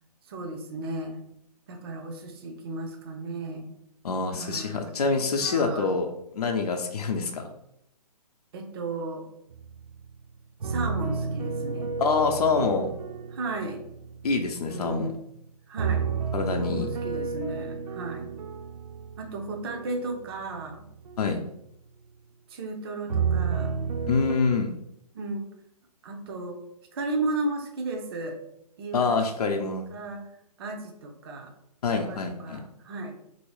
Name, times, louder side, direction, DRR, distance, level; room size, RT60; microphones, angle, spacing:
voice 1, 0.3-1.2 1.7-3.7 4.4-4.9 5.4-6.0 8.5-9.2 10.6-11.9 13.3-13.8 14.7-15.2 15.7-16.0 16.6-18.2 19.2-20.9 22.5-23.8 25.1-25.5 26.0-26.6 26.9-28.4 28.8-29.2 29.5-30.2 30.6-31.5 31.9-33.1, right 2 dB, 40° right, 3 dB, 0.5 m, -34 dB
voice 2, 4.0-6.1 6.3-7.5 12.0-12.9 14.2-15.1 16.3-16.9 21.2-21.4 24.1-24.7 28.9-29.9 31.8-32.6, left 4 dB, 70° left, 3 dB, 0.6 m, -26 dB
sound 1, 9.5-10.2 10.6-15.1 15.8-21.4 23.1-24.3, right 5 dB, 85° right, 0.4 m, -32 dB
3.0 x 2.7 x 3.0 m, 0.76 s
hypercardioid pair, 145°, 20 cm